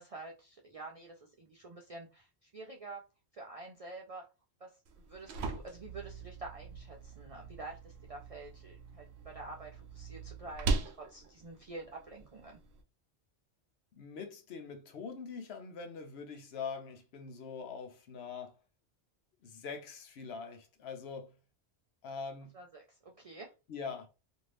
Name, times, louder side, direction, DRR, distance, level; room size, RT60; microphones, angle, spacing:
voice 1, 0.0-3.0 3.3-4.3 4.6-4.8 5.1-12.6 22.5-23.5, right 3 dB, 60° right, 0.3 m, -48 dB
sound 1, 4.9-12.8, right 3 dB, 75° right, 0.9 m, -40 dB
voice 2, 14.0-18.6 19.4-21.3 22.0-22.6 23.7-24.1, left 5 dB, 75° left, 0.9 m, -43 dB
2.6 x 2.6 x 3.2 m
omnidirectional pair, 1.1 m